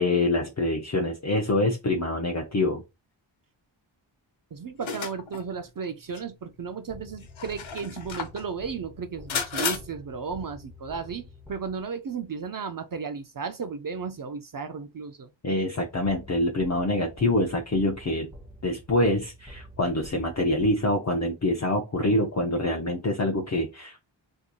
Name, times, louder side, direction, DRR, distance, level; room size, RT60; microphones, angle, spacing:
voice 1, 0.0-2.8 15.4-18.3 18.6-24.0, left 2 dB, 35° left, 0.6 m, -25 dB
voice 2, 4.5-15.3, right 5 dB, 50° right, 0.4 m, -34 dB
sound 1, 4.8-5.4 6.2-6.3 7.2-8.4 9.3-9.8, left 6 dB, 85° left, 0.8 m, -32 dB
sound 2, 6.9-12.0 16.0-21.2, left 1 dB, 5° right, 0.9 m, -48 dB
4.4 x 2.7 x 2.2 m
wide cardioid pair, 90°, 47 cm